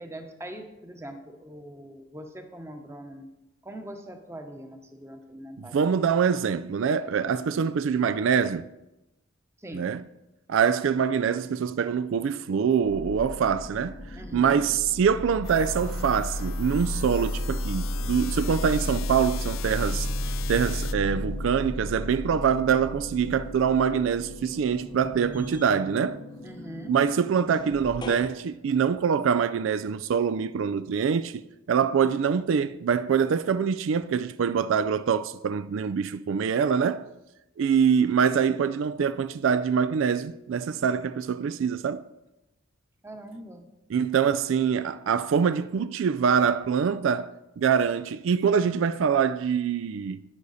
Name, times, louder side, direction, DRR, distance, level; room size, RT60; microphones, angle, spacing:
voice 1, 0.0-3.3 3.6-5.8 9.6-9.9 14.2-14.7 26.4-27.0 43.0-43.7, right 1 dB, 15° right, 0.9 m, -42 dB
voice 2, 5.6-8.7 9.7-10.0 10.5-20.1 20.5-26.2 26.9-31.4 31.7-37.0 37.6-42.0 43.9-47.3 47.6-50.2, right 7 dB, 70° right, 0.3 m, -24 dB
sound 1, 11.4-12.0 12.4-28.3, equal, 20° left, 0.7 m, -34 dB
sound 2, 15.4-20.9, left 10 dB, 75° left, 0.4 m, -40 dB
11.5 x 9.7 x 4.1 m
head